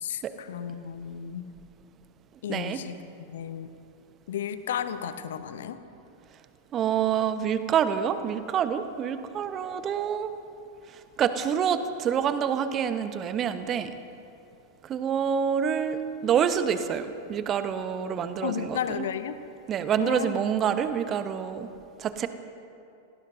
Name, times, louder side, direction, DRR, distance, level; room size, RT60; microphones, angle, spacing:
voice 1, 0.0-1.5 2.4-3.0 3.3-3.7 4.3-5.8 18.4-19.4 20.0-20.4, left 9 dB, 60° left, 12 dB, 0.9 m, -33 dB
voice 2, 2.5-2.8 6.7-10.3 11.2-13.9 14.9-19.0 19.7-21.7 22.0-22.3, right 8 dB, 30° right, 10 dB, 1.1 m, -27 dB
27.5 x 18.0 x 2.7 m, 2.6 s
figure-of-eight pair, 90°, 0 cm